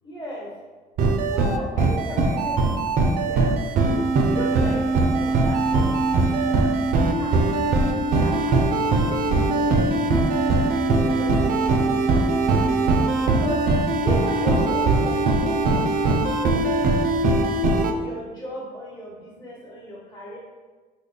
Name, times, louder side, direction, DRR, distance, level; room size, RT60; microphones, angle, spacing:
voice 1, 0.0-0.5 1.3-7.4 8.1-10.1 10.5-12.6 13.4-13.6 13.9-16.7 17.9-20.4, equal, 25° left, -8 dB, 1.2 m, -37 dB
sound 1, 1.0-17.9, right 3 dB, 55° right, 0.4 m, -21 dB
3.3 x 2.1 x 3.8 m, 1.4 s
cardioid pair, 110°, 17 cm